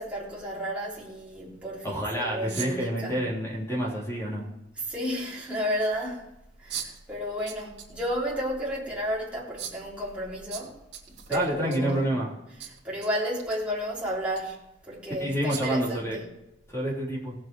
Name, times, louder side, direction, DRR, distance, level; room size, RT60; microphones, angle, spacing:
voice 1, 0.0-3.3 4.8-6.2 6.6-10.8 11.1-12.2 12.6-14.6 14.9-16.3, equal, 5° right, 3.8 m, -32 dB
voice 2, 1.8-4.5 11.3-12.3 15.2-16.2 16.7-17.3, right 1 dB, 15° left, 3.7 m, -28 dB
sound 1, 2.5-2.9 4.4-4.5 6.7-7.0 7.5-7.9 8.3-8.4 9.6-9.9 10.5-12.0 12.6-13.1 13.4-13.6 14.3-14.4 15.5-15.8, right 9 dB, 65° right, 2.3 m, -38 dB
17.0 x 7.7 x 4.7 m
head